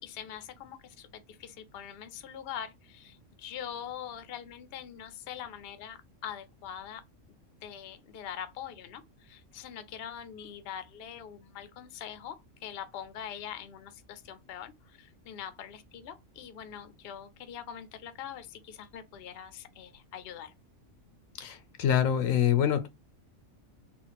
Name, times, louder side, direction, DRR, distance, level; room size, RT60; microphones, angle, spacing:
voice 1, 0.0-7.0 7.6-20.5, left 9 dB, 60° left, 0.8 m, -43 dB
voice 2, 21.4-22.9, left 9 dB, 85° left, 1.1 m, -25 dB
3.8 x 2.4 x 3.9 m
omnidirectional pair, 1.3 m